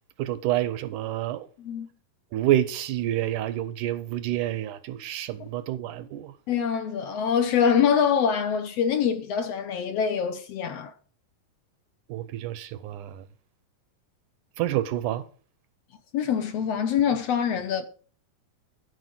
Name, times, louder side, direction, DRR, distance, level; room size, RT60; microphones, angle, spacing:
voice 1, 0.2-1.5 2.3-6.3 12.1-13.2 14.6-15.2, right 13 dB, 75° right, 1.9 m, -28 dB
voice 2, 1.6-1.9 6.5-10.9 16.1-17.9, left 7 dB, 70° left, 1.6 m, -24 dB
13.5 x 5.0 x 7.6 m
omnidirectional pair, 4.0 m